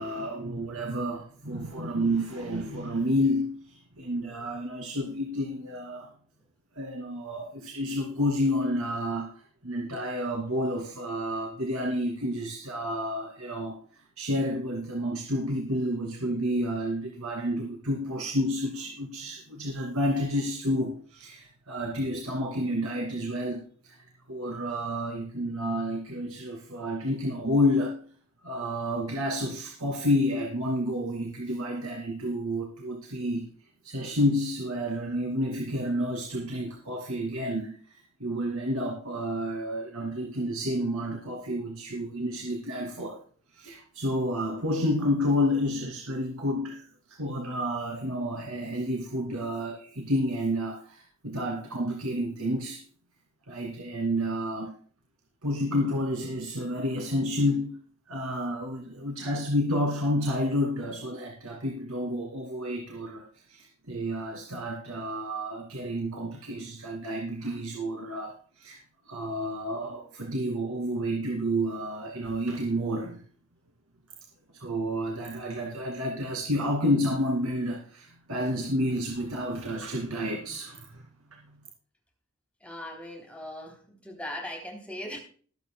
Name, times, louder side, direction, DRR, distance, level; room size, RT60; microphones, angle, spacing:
voice 1, 0.0-6.1 6.7-24.0 24.3-28.0 28.4-33.5 33.8-43.2 43.5-52.8 53.5-54.7 55.4-57.8 58.1-68.8 69.1-73.2 74.5-81.4, equal, 80° right, 1 dB, 2.4 m, -30 dB
voice 2, 82.6-85.2, left 1 dB, 5° left, 1 dB, 3.1 m, -39 dB
21.5 x 8.5 x 2.2 m, 0.43 s
head